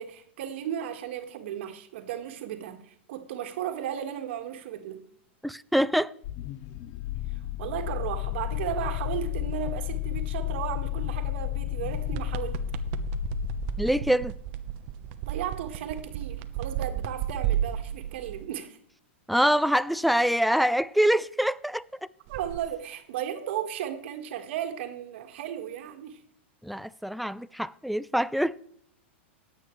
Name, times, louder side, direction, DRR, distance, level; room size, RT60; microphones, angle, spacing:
voice 1, 0.0-5.0 7.3-12.6 15.2-18.8 22.3-26.2, right 10 dB, 65° right, 1.8 m, -35 dB
voice 2, 5.4-6.1 13.8-14.3 19.3-21.8 26.6-28.6, equal, ahead, 0.3 m, -25 dB
sound 1, 6.2-14.4, left 16 dB, 40° left, 0.6 m, -32 dB
sound 2, 11.8-18.4 22.3-22.6, right 10 dB, 50° right, 0.9 m, -33 dB
19.5 x 8.4 x 3.2 m
hypercardioid pair, 125°, 7 cm